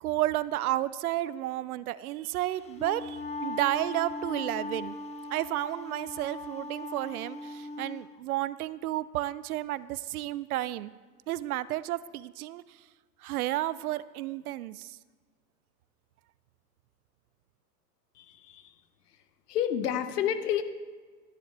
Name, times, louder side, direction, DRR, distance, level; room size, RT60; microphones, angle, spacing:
voice 1, 0.0-4.9 5.3-10.9 11.3-12.6 13.2-15.0, right 15 dB, 60° right, 18 dB, 0.5 m, -32 dB
Wind instrument woodwind instrument, 2.6-8.0, left 2 dB, 15° left, 0.6 m, -39 dB
voice 2, 18.2-18.7 19.5-20.6, left 9 dB, 65° left, 10 dB, 1.2 m, -29 dB
13.5 x 10.0 x 3.4 m, 1.4 s
hypercardioid pair, 115°, 50 cm